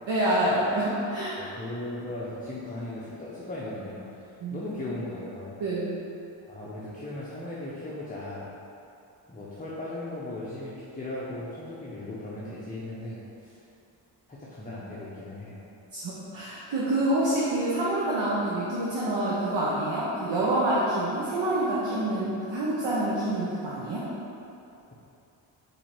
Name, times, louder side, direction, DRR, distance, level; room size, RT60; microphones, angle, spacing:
voice 1, 0.1-1.4 4.4-4.6 5.6-6.0 15.9-24.1, right 1 dB, 60° right, -8 dB, 0.9 m, -27 dB
voice 2, 1.4-4.1 4.5-5.5 6.4-8.5 9.3-13.6 14.3-15.6, left 1 dB, 15° left, -7 dB, 0.7 m, -37 dB
4.5 x 2.7 x 4.4 m, 2.7 s
cardioid pair, 70°, 48 cm